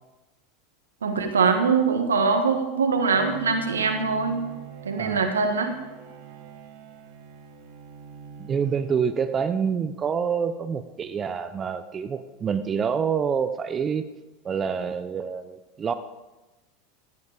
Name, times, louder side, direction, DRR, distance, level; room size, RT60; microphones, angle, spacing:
voice 1, 1.0-4.4 4.8-5.7, right 5 dB, 85° right, 6 dB, 1.5 m, -23 dB
Bowed string instrument, 3.1-9.8, right 7 dB, 65° right, 1.7 m, -44 dB
voice 2, 5.0-5.3 8.4-14.1 14.4-15.9, right 6 dB, 30° right, 11 dB, 0.7 m, -27 dB
14.5 x 9.6 x 5.0 m, 1.1 s
hypercardioid pair, 85°, 0 cm